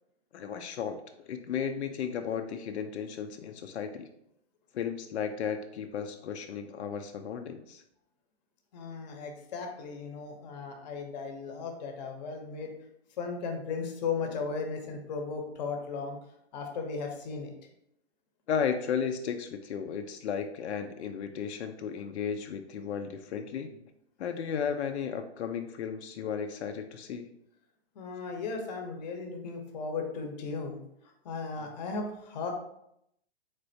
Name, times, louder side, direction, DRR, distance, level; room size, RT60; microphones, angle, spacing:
voice 1, 0.3-1.0 1.2-4.1 4.7-7.8 18.5-23.8 24.2-27.3, left 7 dB, 85° left, 6 dB, 0.5 m, -34 dB
voice 2, 8.7-12.7 13.2-16.2 16.5-17.6 27.9-32.5, left 4 dB, 40° left, 3 dB, 0.7 m, -36 dB
3.6 x 3.3 x 2.6 m, 0.77 s
hypercardioid pair, 150°, 32 cm